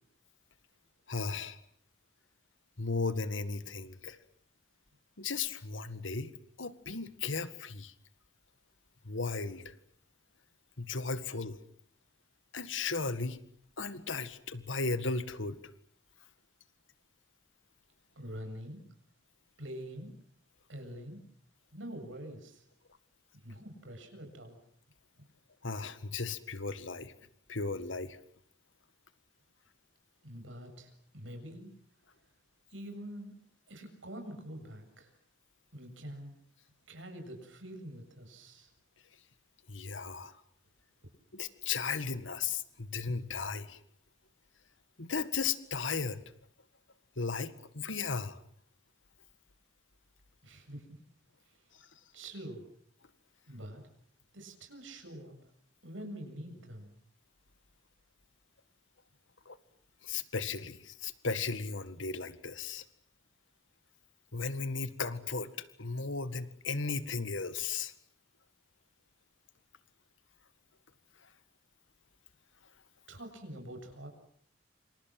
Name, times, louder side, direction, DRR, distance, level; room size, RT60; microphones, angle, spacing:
voice 1, 1.1-1.6 2.8-4.2 5.2-6.3 6.6-7.9 9.1-9.7 10.8-11.6 12.5-13.4 13.8-15.6 25.6-27.1 27.5-28.2 39.7-40.4 41.3-43.8 45.0-46.2 47.2-48.4 59.5-59.6 60.0-62.9 64.3-67.9, left 4 dB, 80° left, 13 dB, 1.9 m, -35 dB
voice 2, 18.2-18.8 19.6-20.1 20.7-21.2 21.7-22.6 23.3-24.6 30.2-31.7 32.7-33.4 33.7-35.1 35.7-36.3 36.9-38.7 50.4-50.9 51.5-51.6 52.1-52.6 53.5-53.8 54.3-55.3 55.8-56.9 73.1-74.1, right 1 dB, 85° right, 6 dB, 7.7 m, -45 dB
28.0 x 27.5 x 7.7 m, 0.63 s
head